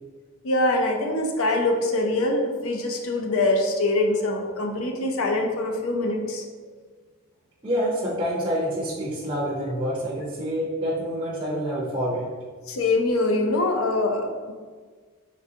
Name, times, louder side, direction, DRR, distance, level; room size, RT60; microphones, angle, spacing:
voice 1, 0.4-6.4 12.7-14.5, left 2 dB, 70° left, 3 dB, 0.5 m, -24 dB
voice 2, 7.6-12.3, equal, 20° right, -6 dB, 0.5 m, -27 dB
3.7 x 3.4 x 2.7 m, 1.5 s
head